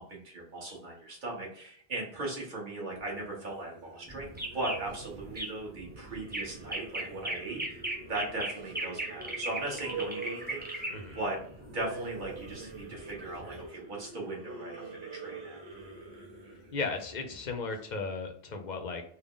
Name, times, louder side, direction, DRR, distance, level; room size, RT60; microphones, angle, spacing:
voice 1, 0.0-10.9 11.1-11.4 11.7-14.8 15.1-15.6, right 2 dB, 50° right, -3 dB, 1.3 m, -38 dB
sound 1, 2.9-17.8, right 4 dB, 80° right, 1.3 m, -46 dB
sound 2, 4.1-13.7, right 1 dB, 15° right, 0.5 m, -38 dB
voice 2, 16.7-19.0, left 4 dB, 50° left, 5 dB, 0.6 m, -35 dB
3.5 x 2.1 x 3.7 m, 0.63 s
omnidirectional pair, 1.1 m